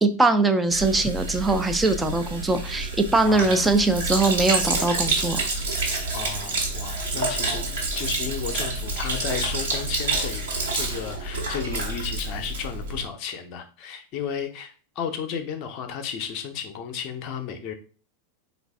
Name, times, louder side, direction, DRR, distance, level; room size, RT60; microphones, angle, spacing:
voice 1, 0.0-5.4, right 3 dB, 10° right, 8 dB, 0.4 m, -22 dB
Sink (filling or washing), 0.7-13.0, right 3 dB, 65° right, 1.3 m, -28 dB
voice 2, 3.2-3.6 6.1-7.7 7.9-10.4 10.7-17.7, left 7 dB, 40° left, 7 dB, 0.6 m, -33 dB
3.9 x 2.4 x 3.4 m, 0.39 s
figure-of-eight pair, 90°, 0 cm